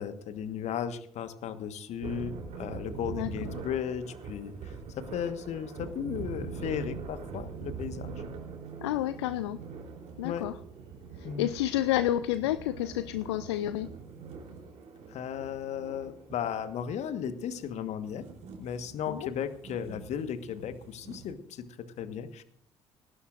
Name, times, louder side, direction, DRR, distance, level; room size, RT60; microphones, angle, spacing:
voice 1, 0.0-8.1 10.2-10.5 11.2-11.5 15.1-18.2 18.6-22.4, left 8 dB, 50° left, 12 dB, 1.4 m, -35 dB
sound 1, 2.0-21.3, right 5 dB, 55° right, 3.6 m, -43 dB
voice 2, 8.8-9.6 10.2-10.5 11.2-13.9 19.1-19.2, left 13 dB, 75° left, 14 dB, 0.5 m, -30 dB
18.5 x 16.5 x 2.6 m, 0.69 s
figure-of-eight pair, 50°, 14 cm